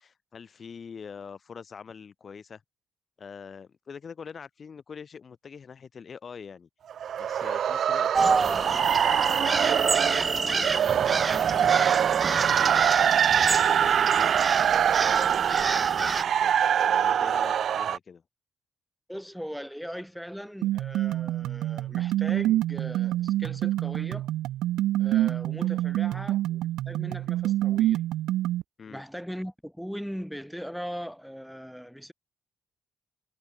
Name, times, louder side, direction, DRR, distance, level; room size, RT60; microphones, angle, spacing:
voice 1, 0.0-2.6 3.2-6.7 7.2-11.8 12.2-14.3 15.0-16.5 16.9-18.2 26.0-26.2 28.8-29.0, left 6 dB, 45° left, 5.0 m, -44 dB
sound 1, 6.9-18.0, right 9 dB, 60° right, 0.3 m, -24 dB
sound 2, 8.1-16.2, right 4 dB, 35° right, 1.1 m, -28 dB
voice 2, 19.1-24.3 25.0-28.1 28.9-32.1, equal, ahead, 6.2 m, -39 dB
sound 3, 20.6-28.6, right 14 dB, 90° right, 0.9 m, -27 dB
cardioid pair, 90°, 0 cm